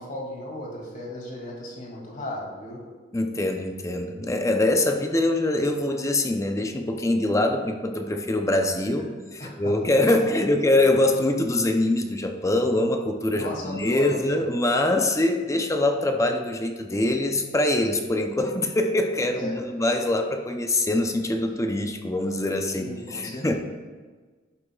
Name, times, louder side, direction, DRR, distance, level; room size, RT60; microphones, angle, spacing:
voice 1, 0.0-2.8 8.9-9.0 9.4-9.9 10.2-10.3 13.3-14.5 19.3-19.6 22.7-23.5, left 1 dB, 45° left, -2 dB, 2.5 m, -36 dB
voice 2, 3.1-9.1 9.4-23.5, left 1 dB, 15° left, 4 dB, 0.7 m, -24 dB
12.0 x 8.5 x 2.4 m, 1.4 s
head